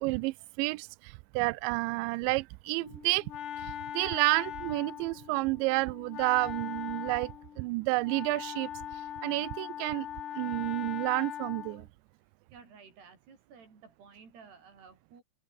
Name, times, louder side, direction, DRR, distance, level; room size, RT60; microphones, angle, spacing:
voice 1, 0.0-3.3 3.6-10.1 10.4-11.9, right 24 dB, 80° right, 2.7 m, -30 dB
Wind instrument woodwind instrument, 2.8-11.9, left 10 dB, 65° left, 4.2 m, -41 dB
voice 2, 12.5-15.2, right 5 dB, 55° right, 7.5 m, -54 dB
omnidirectional pair, 5.5 m